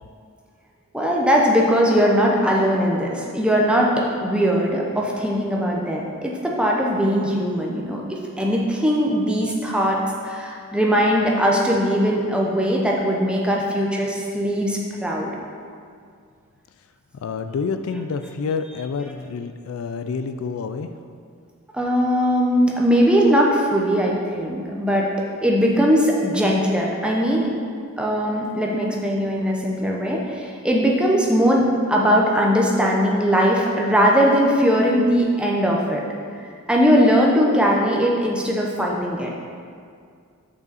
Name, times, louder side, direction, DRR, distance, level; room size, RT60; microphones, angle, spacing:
voice 1, 0.9-3.9 4.2-10.0 10.2-15.3 21.7-25.1 25.4-27.5 28.0-36.0 36.7-39.3, equal, 5° right, -2 dB, 0.7 m, -20 dB
voice 2, 17.2-20.9, left 5 dB, 70° left, 8 dB, 0.3 m, -28 dB
6.8 x 5.5 x 4.1 m, 2.2 s
head